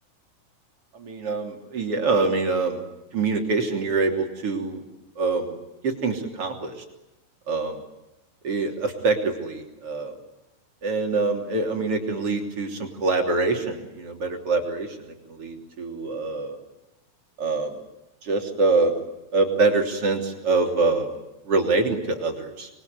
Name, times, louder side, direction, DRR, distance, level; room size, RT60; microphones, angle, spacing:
voice 1, 1.0-2.8 3.1-4.8 5.2-5.5 5.8-6.7 7.5-7.7 8.4-10.1 10.8-16.6 17.4-17.8 18.2-18.9 19.3-21.1 21.5-22.7, right 3 dB, 40° right, 3 dB, 3.9 m, -25 dB
26.5 x 22.5 x 9.6 m, 0.98 s
omnidirectional pair, 4.1 m